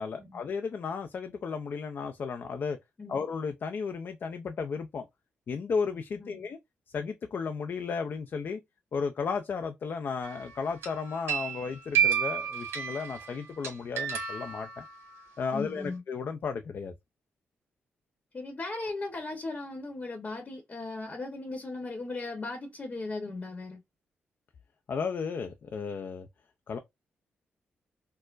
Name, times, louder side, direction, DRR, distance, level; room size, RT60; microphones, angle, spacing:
voice 1, 0.0-2.8 3.1-5.1 5.5-6.6 6.9-8.6 8.9-14.8 15.4-16.9 24.9-26.3 26.7-26.8, left 5 dB, 55° left, 0.4 m, -34 dB
sound 1, 10.2-10.5 10.8-15.2, right 8 dB, 80° right, 1.0 m, -31 dB
voice 2, 15.5-16.0 18.3-23.8, left 3 dB, 35° left, 0.9 m, -37 dB
4.4 x 2.0 x 2.4 m
cardioid pair, 85°, 4 cm